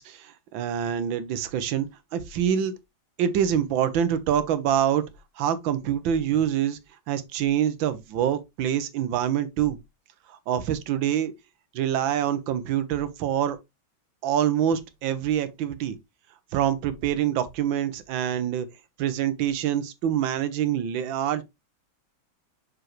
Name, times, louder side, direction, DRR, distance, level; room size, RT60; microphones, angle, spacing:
voice 1, 0.0-2.7 3.2-5.0 5.4-6.8 7.1-9.8 10.3-11.3 11.7-13.6 14.2-16.0 16.5-18.7 19.0-21.4, right 9 dB, 75° right, 1.6 m, -25 dB
6.2 x 4.9 x 3.0 m
omnidirectional pair, 2.2 m